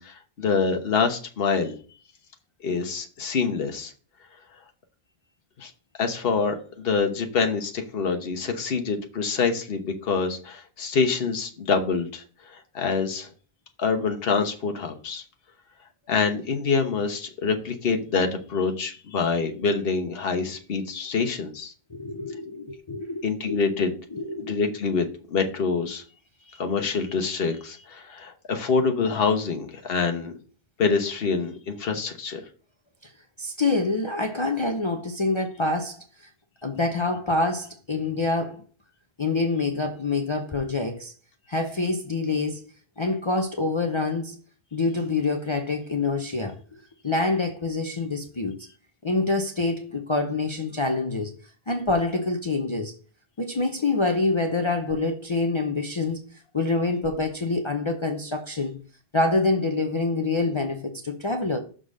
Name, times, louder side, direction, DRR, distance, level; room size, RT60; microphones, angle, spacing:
voice 1, 0.0-1.7 2.6-3.9 5.6-5.7 6.0-12.2 12.5-13.3 13.8-15.2 16.1-21.7 23.2-23.9 24.5-25.0 25.3-26.0 26.6-30.3 30.8-32.4, left 5 dB, 70° left, 1.2 m, -26 dB
voice 2, 21.9-23.6 24.1-24.6 33.4-36.0 36.6-38.6 39.2-41.1 41.5-42.6 43.0-44.3 44.7-46.6 47.0-48.5 49.0-51.3 51.7-52.9 53.4-56.2 56.5-58.8 59.1-61.6, left 3 dB, 35° left, 0.7 m, -26 dB
6.6 x 3.8 x 6.3 m
omnidirectional pair, 1.0 m